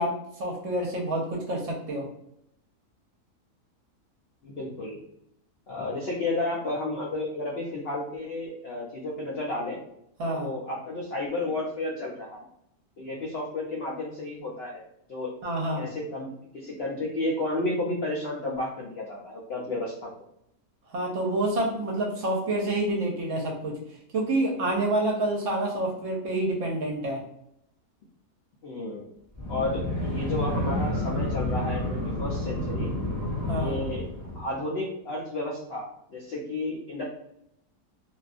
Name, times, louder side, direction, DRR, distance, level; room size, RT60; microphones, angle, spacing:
voice 1, 0.0-2.0 10.2-10.5 15.4-15.9 20.9-23.8 24.1-27.2 33.5-33.8, right 1 dB, 65° right, -1 dB, 0.8 m, -28 dB
voice 2, 4.4-5.0 5.7-9.8 10.3-12.4 13.0-14.8 15.1-20.1 28.6-29.0 29.5-32.9 33.5-34.1 34.3-37.0, left 2 dB, 75° left, -3 dB, 0.5 m, -32 dB
sound 1, 29.3-34.6, left 1 dB, 15° left, 0.7 m, -29 dB
2.6 x 2.3 x 2.4 m, 0.76 s
omnidirectional pair, 1.6 m